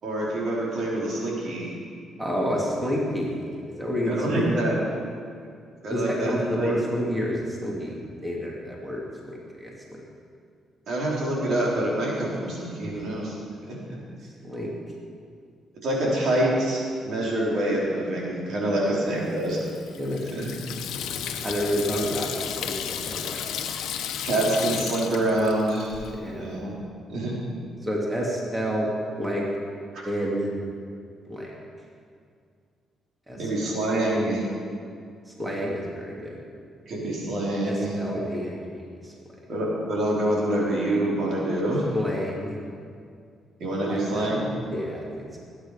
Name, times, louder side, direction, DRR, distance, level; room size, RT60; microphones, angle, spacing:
voice 1, 0.0-1.7 4.1-4.7 5.8-6.7 10.9-13.4 13.7-13.8 15.8-19.6 20.3-20.5 24.2-26.1 26.4-26.7 27.1-27.3 29.9-30.1 33.4-34.4 36.9-38.0 39.5-41.9 43.6-44.5, right 1 dB, 65° right, -5 dB, 4.6 m, -26 dB
voice 2, 2.2-4.5 4.9-5.0 5.9-10.0 12.9-13.0 14.4-14.7 20.0-20.5 21.4-23.4 26.1-26.6 27.8-28.9 29.2-29.5 30.0-30.5 31.3-31.5 33.3-33.8 35.3-36.4 37.6-39.1 41.9-42.6 43.8-44.4 44.7-45.4, equal, 15° right, -3 dB, 2.7 m, -30 dB
Water tap faucet / Sink (filling or washing), 19.4-26.1, left 8 dB, 85° left, 1.0 m, -33 dB
20.5 x 9.5 x 5.2 m, 2.3 s
cardioid pair, 90°, 0 cm